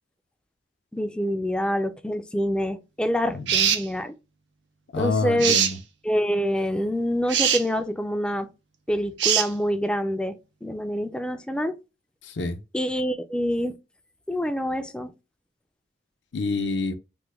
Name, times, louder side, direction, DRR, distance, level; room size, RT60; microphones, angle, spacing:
voice 1, 0.9-4.1 5.0-5.6 6.0-8.5 8.9-11.8 12.7-13.8 14.3-15.1, equal, 5° left, 0.3 m, -26 dB
sound 1, 3.5-3.8 5.4-5.7 7.3-7.6 9.2-9.5, right 8 dB, 70° right, 0.6 m, -21 dB
voice 2, 4.9-5.8 12.2-12.6 16.3-16.9, left 3 dB, 70° left, 0.5 m, -27 dB
3.1 x 2.2 x 3.4 m
head